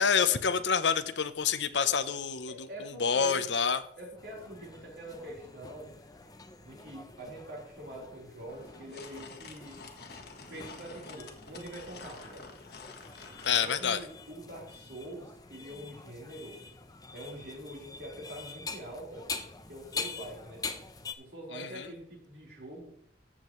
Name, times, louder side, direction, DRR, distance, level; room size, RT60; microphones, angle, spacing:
voice 1, 0.0-3.8 13.4-14.0 21.5-21.9, left 6 dB, 75° left, 12 dB, 0.7 m, -28 dB
voice 2, 2.5-3.6 4.0-5.9 6.6-9.9 10.5-12.5 13.5-16.6 17.1-19.3 19.7-20.7 21.2-22.9, right 1 dB, 60° right, -3 dB, 4.2 m, -45 dB
sound 1, 4.2-21.1, left 4 dB, 20° left, 0.6 m, -45 dB
sound 2, 8.5-13.7, left 4 dB, 60° left, 1.3 m, -48 dB
14.5 x 7.5 x 3.1 m, 0.68 s
head